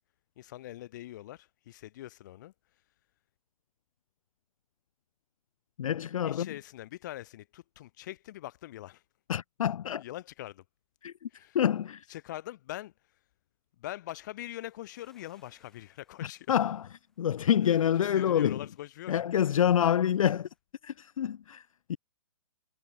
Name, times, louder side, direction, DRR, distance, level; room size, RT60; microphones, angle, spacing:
voice 1, 0.4-2.5 6.2-9.0 10.0-10.6 11.3-11.6 12.1-12.9 13.8-16.5 18.1-19.1 19.8-19.9, left 14 dB, 30° left, 1.5 m, -43 dB
voice 2, 5.8-6.5 9.3-10.0 11.0-11.3 11.5-12.1 16.2-16.9 17.2-18.6 19.1-20.5 20.8-22.0, left 9 dB, 65° left, 0.5 m, -27 dB
sound 1, 14.5-20.6, left 2 dB, ahead, 7.5 m, -73 dB
hypercardioid pair, 170°, 19 cm